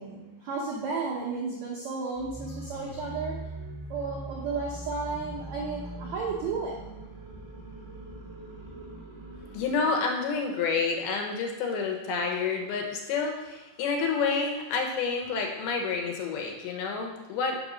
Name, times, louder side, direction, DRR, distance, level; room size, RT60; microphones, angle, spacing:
voice 1, 0.0-3.3 3.9-6.8, right 4 dB, 85° right, -4 dB, 1.5 m, -33 dB
sound 1, 2.1-9.8, right 1 dB, 25° right, 0.5 m, -41 dB
voice 2, 9.5-17.6, left 4 dB, 75° left, 3 dB, 2.7 m, -29 dB
6.0 x 5.1 x 6.2 m, 1.0 s
omnidirectional pair, 4.7 m